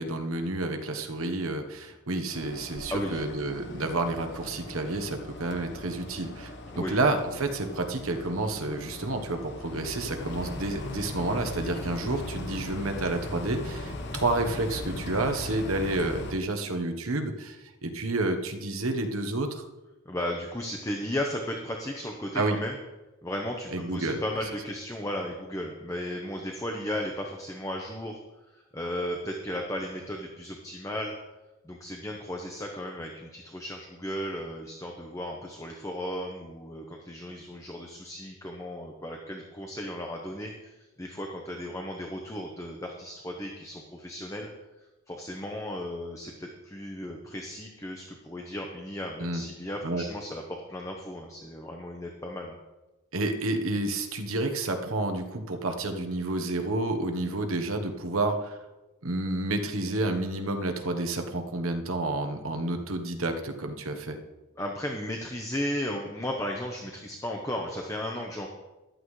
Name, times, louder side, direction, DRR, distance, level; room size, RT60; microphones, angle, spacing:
voice 1, 0.0-17.6 17.8-19.6 22.3-22.6 23.7-24.2 49.2-49.4 49.8-50.0 53.1-58.6 59.0-64.2, right 2 dB, 75° right, 6 dB, 1.2 m, -30 dB
sound 1, 2.3-16.3, left 2 dB, 50° left, 1.0 m, -39 dB
voice 2, 2.9-3.2 6.7-6.9 20.0-22.8 23.2-28.2 28.5-31.1 31.6-44.5 45.1-52.6 64.6-68.5, left 1 dB, 15° left, 1 dB, 0.9 m, -35 dB
14.0 x 11.5 x 3.3 m, 1.1 s
head